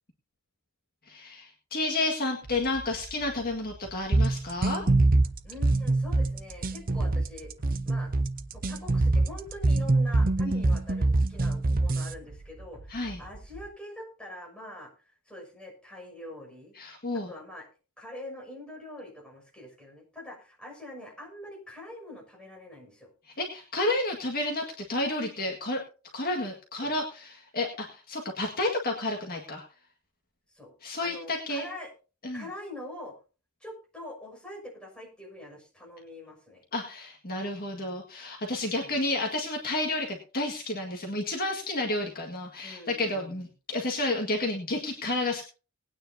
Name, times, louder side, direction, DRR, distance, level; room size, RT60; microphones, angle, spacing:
voice 1, 1.1-4.8 12.9-13.2 16.8-17.3 23.4-25.8 26.1-29.6 30.8-31.7 32.2-32.4 36.7-45.5, left 2 dB, 40° left, 1 dB, 1.8 m, -31 dB
sound 1, 2.4-13.7, right 2 dB, 25° right, 4.3 m, -48 dB
sound 2, 4.1-12.1, right 2 dB, 40° right, 0.7 m, -24 dB
voice 2, 5.4-7.5 7.8-8.1 8.5-14.9 15.3-16.7 17.3-17.7 18.0-23.1 26.8-27.0 30.5-30.7 31.0-31.9 32.3-33.1 33.6-36.6 38.7-39.0 42.6-43.4, left 1 dB, 5° left, -2 dB, 6.4 m, -44 dB
20.5 x 9.4 x 2.8 m, 0.35 s
head